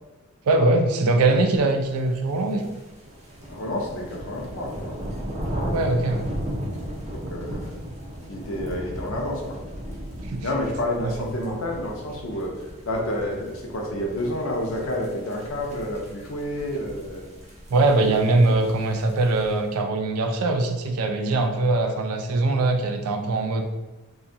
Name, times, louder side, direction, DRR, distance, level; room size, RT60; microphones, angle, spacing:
voice 1, 0.5-2.7 5.7-6.3 10.3-10.5 11.0-11.2 17.7-23.6, right 2 dB, 90° right, 5 dB, 0.4 m, -22 dB
sound 1, 2.1-19.7, equal, 30° right, 0.5 m, -36 dB
voice 2, 3.5-4.9 7.1-7.7 8.3-9.6 10.4-17.3 17.7-18.5, left 1 dB, 65° left, 0 dB, 0.5 m, -30 dB
2.7 x 2.3 x 2.6 m, 1.1 s
head